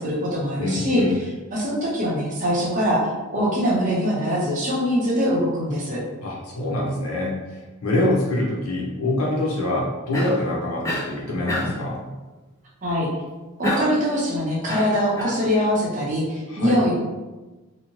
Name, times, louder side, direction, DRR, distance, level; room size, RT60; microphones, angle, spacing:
voice 1, 0.0-6.0 12.8-13.1 13.6-16.9, equal, 35° right, -5 dB, 0.6 m, -23 dB
voice 2, 0.6-1.1 6.2-12.0 16.5-16.8, left 1 dB, 75° left, -3 dB, 0.7 m, -25 dB
Cough, 10.1-10.5 10.8-11.1 11.5-11.9 13.6-14.1 14.7-15.4, left 1 dB, 15° left, 0.3 m, -27 dB
2.7 x 2.0 x 2.9 m, 1.2 s
head